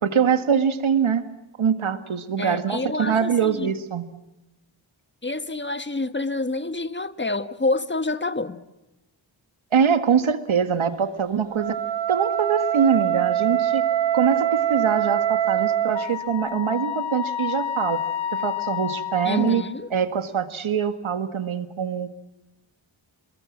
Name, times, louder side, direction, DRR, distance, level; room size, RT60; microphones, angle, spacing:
voice 1, 0.0-1.2 1.6-4.0 9.7-11.8 12.1-13.9 14.1-18.0 18.3-19.6 19.9-22.1, right 7 dB, 85° right, 10 dB, 1.9 m, -23 dB
voice 2, 2.4-3.7 5.2-8.6 19.2-19.9, left 2 dB, 25° left, 12 dB, 1.6 m, -27 dB
Wind instrument woodwind instrument, 11.5-16.1, right 11 dB, 65° right, 0.8 m, -23 dB
Wind instrument woodwind instrument 2, 15.9-19.8, left 9 dB, 85° left, 3.2 m, -30 dB
29.5 x 22.0 x 7.4 m, 0.96 s
cardioid pair, 55°, 47 cm